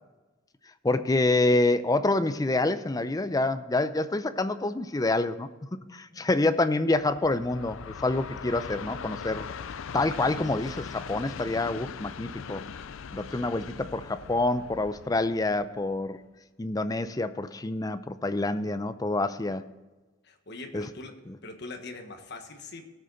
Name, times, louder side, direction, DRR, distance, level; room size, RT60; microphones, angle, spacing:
voice 1, 0.8-5.5 5.9-9.5 9.9-12.6 13.1-16.2 16.6-19.6 20.7-20.8, left 2 dB, 20° left, 11 dB, 0.5 m, -27 dB
Train, 7.0-16.2, left 6 dB, 75° left, 0.5 m, -41 dB
voice 2, 20.2-21.2 21.4-22.8, left 3 dB, 55° left, 4 dB, 1.4 m, -42 dB
18.0 x 6.4 x 4.0 m, 1.2 s
head